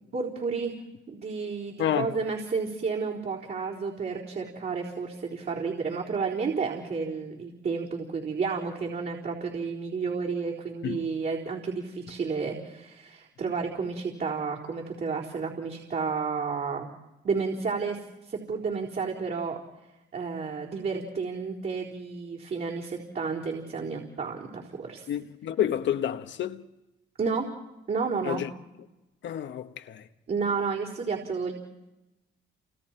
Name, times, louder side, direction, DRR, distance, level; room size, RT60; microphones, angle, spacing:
voice 1, 0.1-0.7 1.1-16.9 17.2-18.0 18.3-19.6 20.1-25.1 27.2-27.5 27.9-28.4 30.3-31.5, right 5 dB, 50° right, 4.2 m, -31 dB
voice 2, 1.8-2.2 10.8-11.1 25.1-26.6 28.2-28.5 29.2-30.1, left 10 dB, 70° left, 1.2 m, -29 dB
29.5 x 27.5 x 4.5 m
cardioid pair, 90°, 20 cm